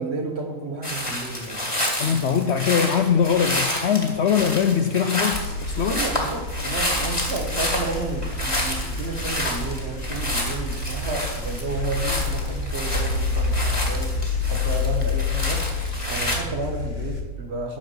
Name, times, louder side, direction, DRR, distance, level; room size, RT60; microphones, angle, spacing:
voice 1, 0.0-1.7 5.9-14.2 14.5-15.7 16.1-17.8, right 3 dB, 50° right, 1.6 m, -31 dB
sound 1, 0.8-16.4, left 1 dB, 20° left, 2.2 m, -29 dB
voice 2, 2.0-6.1, left 7 dB, 65° left, 0.7 m, -22 dB
sound 2, 5.3-17.2, left 3 dB, 45° left, 2.1 m, -28 dB
11.5 x 4.8 x 7.9 m
omnidirectional pair, 1.5 m